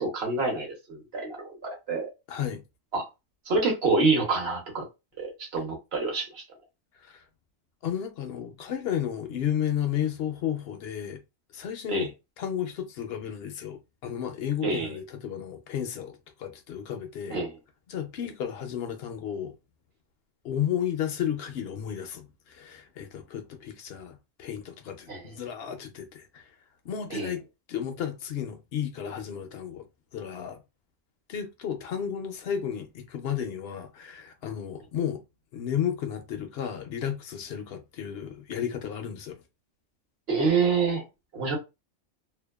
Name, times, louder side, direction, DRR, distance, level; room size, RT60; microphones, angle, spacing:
voice 1, 0.0-2.1 2.9-3.0 3.5-4.8 5.2-6.4 11.9-12.1 14.6-14.9 17.3-17.5 25.1-25.2 27.1-27.3 40.3-41.0 41.3-41.6, right 4 dB, 55° right, 1.2 m, -27 dB
voice 2, 2.3-2.6 7.0-7.2 7.8-11.2 11.5-17.4 17.9-19.5 20.4-26.5 26.8-27.4 27.7-29.9 30.1-30.6 31.3-35.2 35.5-39.4, left 9 dB, 65° left, 0.7 m, -33 dB
2.7 x 2.1 x 2.2 m
omnidirectional pair, 1.3 m